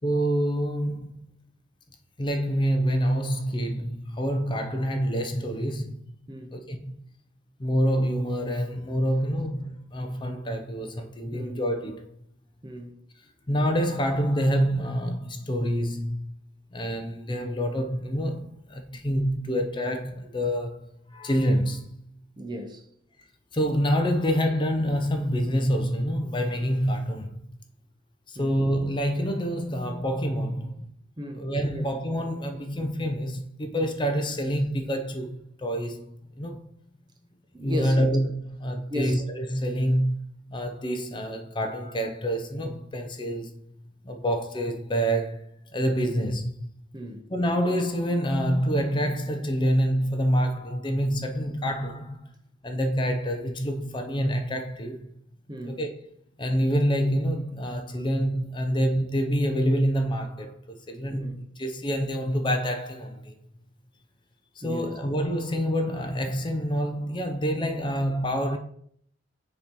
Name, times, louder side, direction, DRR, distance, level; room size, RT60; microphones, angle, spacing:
voice 1, 0.0-1.3 2.2-6.1 6.5-6.9 7.6-12.1 13.5-16.3 16.7-21.9 23.5-27.3 28.3-30.9 31.3-36.7 37.6-40.1 40.5-43.6 44.0-45.4 45.7-46.7 47.3-52.3 52.6-55.1 55.7-55.9 56.4-63.3 64.6-68.6, equal, 25° left, 0.5 m, -27 dB
voice 2, 6.3-6.6 11.3-11.6 12.6-13.0 22.4-22.8 28.3-28.6 31.2-31.8 37.5-38.1 38.9-39.2 46.9-47.3 55.5-55.8 61.1-61.4 64.6-64.9, left 1 dB, 20° right, 0.7 m, -36 dB
6.9 x 3.0 x 5.2 m
head